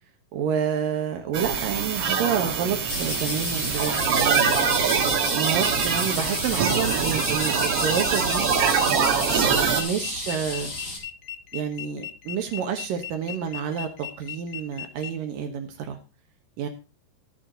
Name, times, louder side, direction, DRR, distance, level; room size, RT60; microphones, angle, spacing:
voice 1, 0.3-4.5 5.3-8.5 9.8-10.7 11.5-16.0 16.6-16.7, right 7 dB, 75° right, 5 dB, 2.9 m, -29 dB
sound 1, 1.3-9.8, right 6 dB, 50° right, 2.1 m, -24 dB
sound 2, 2.9-11.0, left 2 dB, 30° left, 4.4 m, -32 dB
sound 3, 6.6-15.1, left 10 dB, 70° left, 1.6 m, -37 dB
12.0 x 9.2 x 4.0 m, 0.30 s
omnidirectional pair, 4.1 m